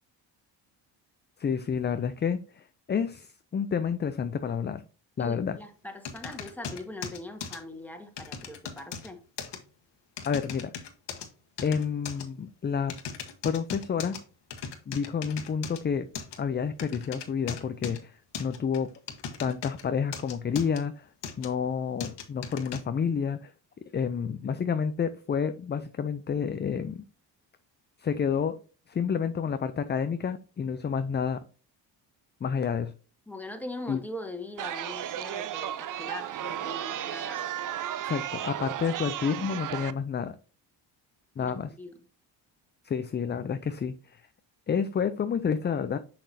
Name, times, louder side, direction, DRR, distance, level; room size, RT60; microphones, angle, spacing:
voice 1, 1.4-4.8 5.2-5.6 10.3-10.7 11.6-12.9 13.4-14.2 14.9-16.1 16.4-18.9 19.4-21.1 21.4-23.5 23.9-27.0 28.0-28.6 28.9-31.4 32.4-32.9 33.9-34.0 38.0-40.3 41.4-41.7 42.8-44.2 44.7-46.0, left 6 dB, 25° left, 0.4 m, -29 dB
voice 2, 5.2-9.2 33.3-37.5 38.8-38.9 39.2-39.3 41.4-42.0, left 1 dB, 5° left, 1.6 m, -41 dB
sound 1, 6.0-7.6 8.2-9.1 9.4-9.6 10.2-11.3 11.6-12.2 12.9-14.2 14.5-15.8 16.1-16.4 16.8-18.0 18.3-19.8 20.1-20.8 21.2-21.5 22.0-22.8, left 6 dB, 60° left, 1.4 m, -38 dB
Chatter, 34.6-39.9, right 11 dB, 45° right, 0.5 m, -34 dB
6.3 x 6.0 x 2.7 m
supercardioid pair, 65°, 47 cm